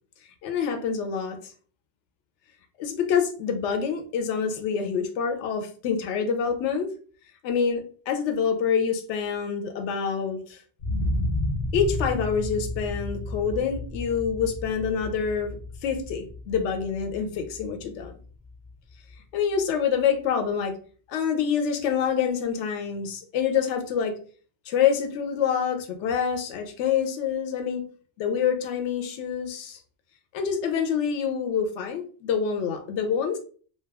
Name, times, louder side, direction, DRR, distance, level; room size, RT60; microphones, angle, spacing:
voice 1, 0.4-1.4 2.8-6.9 7.4-10.6 11.7-15.6 15.8-18.1 19.3-20.8 21.1-24.2 24.7-27.9 28.2-29.8 30.3-33.4, left 7 dB, 80° left, 6 dB, 0.9 m, -26 dB
sound 1, 10.8-18.7 19.1-19.2, left 1 dB, 55° left, 0.4 m, -32 dB
2.3 x 2.2 x 3.3 m, 0.42 s
omnidirectional pair, 1.2 m